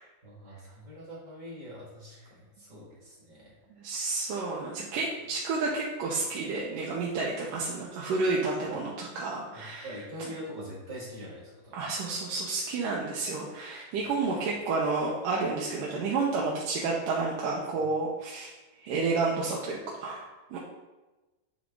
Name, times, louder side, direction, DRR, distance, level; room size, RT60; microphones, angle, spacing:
voice 1, 0.2-3.5 5.2-5.3 8.7-8.9 9.5-11.9, equal, 30° right, -7 dB, 0.8 m, -43 dB
voice 2, 3.8-10.0 11.7-18.5 18.8-20.6, right 3 dB, 80° right, -3 dB, 2.4 m, -30 dB
9.0 x 3.8 x 3.7 m, 1.1 s
omnidirectional pair, 3.9 m